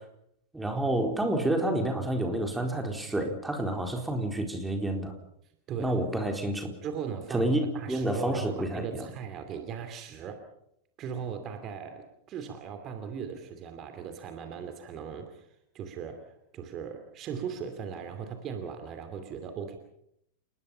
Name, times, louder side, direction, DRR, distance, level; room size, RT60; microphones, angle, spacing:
voice 1, 0.5-5.1 5.8-6.7 7.3-9.1, right 1 dB, 5° right, 3 dB, 4.1 m, -29 dB
voice 2, 5.7-6.0 6.8-10.4 11.0-15.5 15.7-19.8, right 7 dB, 35° right, 7 dB, 2.7 m, -38 dB
29.0 x 20.0 x 5.7 m, 0.75 s
figure-of-eight pair, 90°, 0 cm